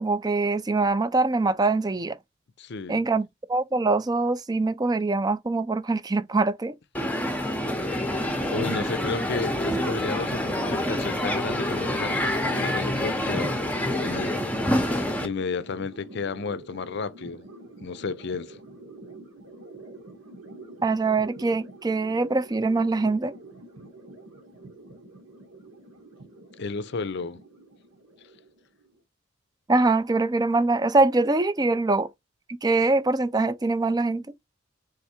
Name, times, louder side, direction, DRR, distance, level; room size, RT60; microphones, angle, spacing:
voice 1, 0.0-2.2 2.9-6.7 20.8-23.3 29.7-32.1 32.6-34.3, right 3 dB, 20° right, 0.4 m, -23 dB
voice 2, 2.6-3.0 8.5-13.5 13.8-14.3 15.2-17.5 17.8-18.6 26.6-27.4, left 4 dB, 55° left, 0.5 m, -32 dB
Crowd, 6.9-15.3, left 1 dB, 5° left, 0.7 m, -27 dB
sound 1, 9.5-29.0, right 2 dB, 90° right, 1.5 m, -46 dB
3.6 x 3.4 x 4.3 m
head